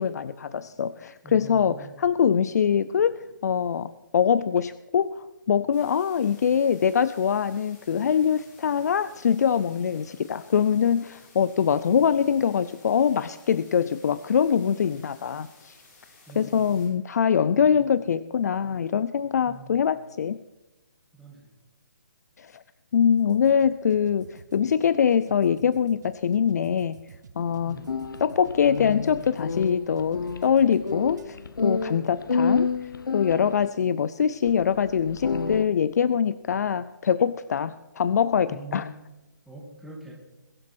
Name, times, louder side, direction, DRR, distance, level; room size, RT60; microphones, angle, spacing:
voice 1, 0.0-15.8 16.4-20.4 22.4-22.6 22.9-27.0 27.4-27.8 28.2-31.4 31.6-38.9, left 7 dB, 55° left, 16 dB, 0.5 m, -23 dB
voice 2, 1.2-2.0 16.3-16.9 17.7-17.9 19.5-19.9 21.1-21.5 27.6-27.9 32.0-32.1 38.5-38.9 39.5-40.1, right 4 dB, ahead, -3 dB, 2.3 m, -44 dB
sound 1, 5.7-16.9, left 3 dB, 35° left, 5.6 m, -55 dB
sound 2, 23.2-31.2, right 6 dB, 60° right, 1.3 m, -48 dB
sound 3, 27.8-33.7 34.5-34.6 35.0-35.7, left 5 dB, 80° left, 1.0 m, -29 dB
22.0 x 7.4 x 6.1 m, 1.0 s
hypercardioid pair, 160°, 11 cm